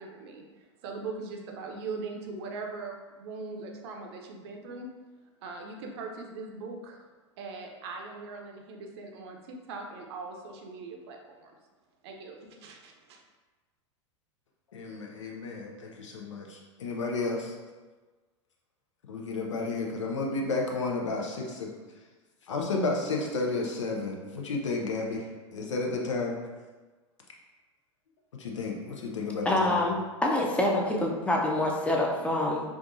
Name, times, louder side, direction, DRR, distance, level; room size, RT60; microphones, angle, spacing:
voice 1, 0.0-4.9 5.4-7.1 7.4-11.6 12.0-13.2, right 3 dB, 60° right, 2 dB, 0.6 m, -40 dB
voice 2, 14.7-17.5 19.1-21.7 22.5-26.4 28.3-29.8, left 3 dB, 80° left, 0 dB, 0.7 m, -32 dB
voice 3, 29.4-32.6, left 1 dB, 10° left, -1 dB, 0.6 m, -26 dB
4.6 x 2.4 x 2.6 m, 1.3 s
hypercardioid pair, 95°, 16 cm